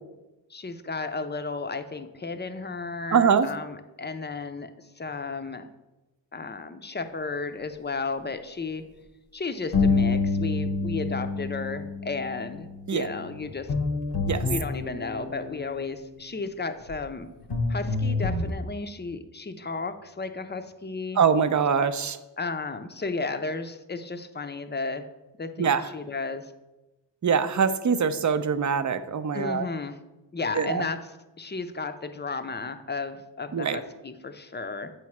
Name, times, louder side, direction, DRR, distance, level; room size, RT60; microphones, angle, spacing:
voice 1, 0.5-5.7 6.3-8.9 9.3-13.7 14.4-17.3 17.7-21.2 22.4-25.1 25.4-26.5 29.3-30.0 30.3-31.1 31.4-34.9, left 4 dB, 25° left, 9 dB, 0.6 m, -33 dB
voice 2, 3.1-3.5 12.9-13.1 14.3-14.4 21.2-22.2 25.6-25.9 27.2-29.7 30.6-30.9 33.5-33.8, right 6 dB, 40° right, 11 dB, 0.5 m, -23 dB
sound 1, 9.7-15.6 16.9-17.0 17.5-18.5, left 3 dB, 65° left, 1.0 m, -27 dB
8.3 x 3.2 x 5.9 m, 1.0 s
cardioid pair, 65°, 45 cm